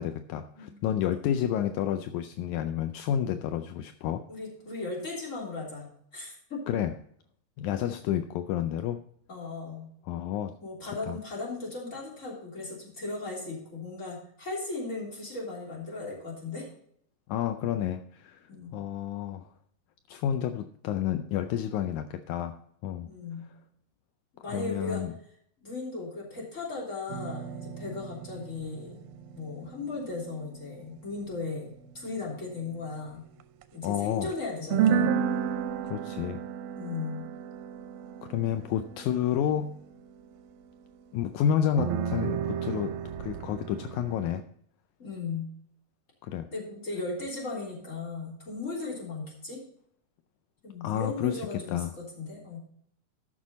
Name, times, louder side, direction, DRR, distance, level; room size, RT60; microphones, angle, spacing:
voice 1, 0.0-4.2 6.7-6.9 7.6-9.0 10.1-10.6 11.1-11.2 17.3-19.5 20.1-23.1 24.5-25.1 33.8-34.3 35.8-36.4 38.2-39.8 41.1-44.4 46.2-46.5 50.8-51.9, left 10 dB, 80° left, 9 dB, 1.7 m, -30 dB
voice 2, 4.3-5.9 6.1-6.6 9.3-9.9 10.6-16.7 18.5-18.7 23.0-23.5 24.4-25.0 25.6-29.0 29.3-33.2 33.7-35.1 36.8-37.2 45.0-45.4 46.5-49.6 50.6-52.6, left 3 dB, 20° left, -4 dB, 3.2 m, -37 dB
sound 1, 27.1-32.9 33.4-33.6 34.3-34.4 34.7-40.8 41.8-44.4, right 8 dB, 90° right, 2.5 m, -33 dB
13.5 x 6.3 x 4.0 m, 0.66 s
omnidirectional pair, 4.0 m